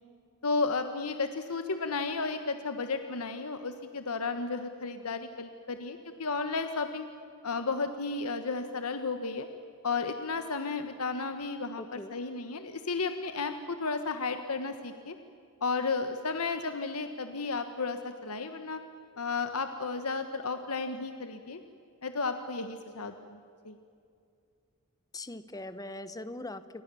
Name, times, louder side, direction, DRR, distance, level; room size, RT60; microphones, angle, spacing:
voice 1, 0.4-7.1 7.4-9.5 9.8-15.1 15.6-18.8 19.2-21.6 22.0-23.8, left 4 dB, 85° left, 8 dB, 1.3 m, -33 dB
voice 2, 11.8-12.1 25.1-26.8, left 2 dB, 15° left, 12 dB, 1.0 m, -41 dB
28.0 x 24.5 x 7.0 m, 2.4 s
head